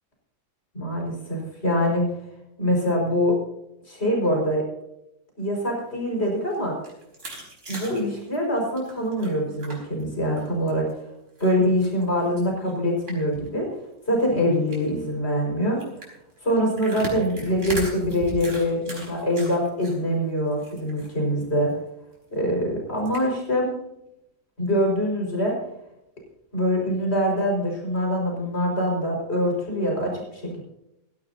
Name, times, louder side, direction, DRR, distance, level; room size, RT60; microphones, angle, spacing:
voice 1, 0.7-2.1 2.6-3.4 3.9-4.6 5.4-6.7 7.7-10.9 11.4-13.7 14.1-15.8 16.4-21.7 22.3-23.7 24.6-25.6 26.5-30.6, equal, 40° left, 0 dB, 5.7 m, -24 dB
sound 1, 6.1-10.0 10.4-10.9 11.4-13.5 13.8-13.9 14.1-14.3 14.7-15.0 15.8-19.9 20.3-21.1 21.4-21.5 21.9-22.0 23.0-23.2, right 1 dB, 50° right, 5.0 m, -38 dB
17.0 x 16.0 x 2.8 m, 0.85 s
omnidirectional pair, 1.6 m